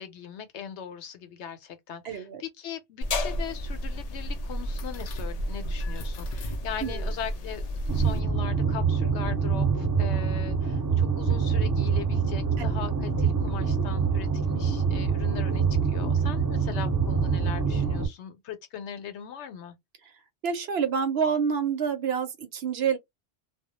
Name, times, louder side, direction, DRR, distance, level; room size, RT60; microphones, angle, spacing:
voice 1, 0.0-7.6 7.9-19.8, left 8 dB, 85° left, 0.9 m, -40 dB
voice 2, 2.0-2.4 6.8-7.1 20.4-23.0, right 6 dB, 65° right, 0.9 m, -27 dB
sound 1, 3.0-8.2, equal, 60° left, 0.4 m, -32 dB
sound 2, 7.9-18.1, right 5 dB, 20° right, 0.8 m, -25 dB
2.2 x 2.0 x 2.8 m
omnidirectional pair, 1.1 m